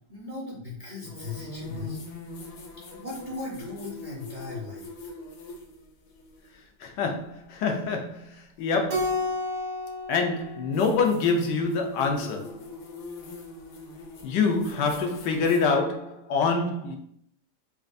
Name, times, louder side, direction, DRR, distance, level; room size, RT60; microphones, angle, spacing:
voice 1, 0.1-2.0 2.9-5.1, left 3 dB, 40° right, 0.7 m, -38 dB
sound 1, 1.0-6.5 8.6-8.7 10.7-15.7, left 2 dB, 65° left, 1.0 m, -42 dB
voice 2, 6.8-8.2 8.6-9.2 10.1-12.5 14.2-17.0, left 4 dB, 80° left, 1.3 m, -26 dB
Keyboard (musical), 8.9-11.5, left 2 dB, 65° right, 1.1 m, -32 dB
4.2 x 2.4 x 2.5 m
omnidirectional pair, 1.8 m